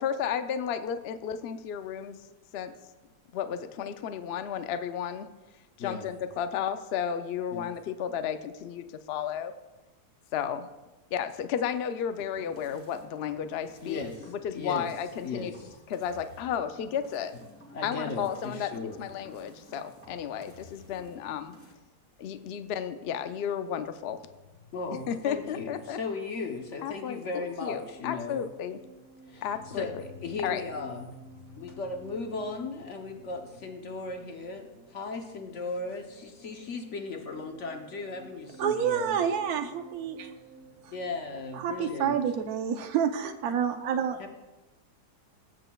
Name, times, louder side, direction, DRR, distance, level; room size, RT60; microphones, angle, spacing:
voice 1, 0.0-2.2 2.5-2.7 3.3-5.3 5.8-9.5 10.3-10.7 11.1-15.5 15.9-17.3 17.8-18.7 19.0-21.5 22.2-24.2 25.1-26.0 26.8-28.8 29.4-30.0 30.4-30.6, left 8 dB, 70° left, 9 dB, 0.6 m, -33 dB
voice 2, 5.8-6.1 7.5-7.7 13.8-14.9 15.2-15.7 17.7-19.0 24.7-28.4 29.3-29.9 30.2-31.2 31.6-39.2 40.9-42.2 44.2-44.3, left 3 dB, 55° left, 3 dB, 1.1 m, -37 dB
sound 1, 12.2-21.7, equal, 10° left, 1.2 m, -53 dB
sound 2, 24.2-43.0, equal, 35° left, 1.4 m, -53 dB
voice 3, 38.6-40.3 41.6-44.2, right 8 dB, 70° right, 7 dB, 1.2 m, -28 dB
17.5 x 7.8 x 2.3 m, 1.1 s
omnidirectional pair, 1.7 m